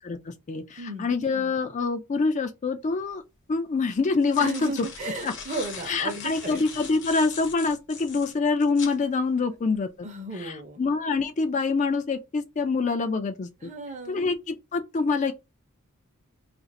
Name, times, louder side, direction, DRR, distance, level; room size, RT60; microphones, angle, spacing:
voice 1, 0.0-3.2 3.5-4.9 5.2-5.3 5.9-9.9 10.4-13.5 14.1-15.3, left 4 dB, 35° left, 0.3 m, -26 dB
voice 2, 0.8-1.2 4.4-6.6 10.0-10.8 13.6-14.2, right 2 dB, 35° right, 0.7 m, -35 dB
sound 1, 2.9-3.0 4.0-9.0, left 6 dB, 55° left, 0.7 m, -41 dB
2.5 x 2.4 x 3.9 m
head